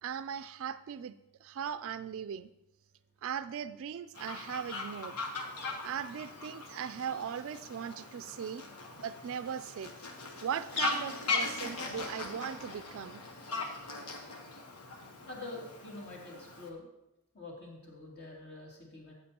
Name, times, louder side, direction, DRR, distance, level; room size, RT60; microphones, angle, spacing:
voice 1, 0.0-1.1 1.4-2.5 3.2-5.2 5.8-8.6 9.0-9.9 10.4-13.2, right 8 dB, 60° right, 12 dB, 0.3 m, -38 dB
Fowl, 4.1-16.7, left 3 dB, 90° left, 1.2 m, -39 dB
voice 2, 15.3-16.9 17.3-19.1, left 2 dB, 50° left, -3 dB, 2.8 m, -46 dB
14.0 x 7.8 x 2.9 m, 0.89 s
head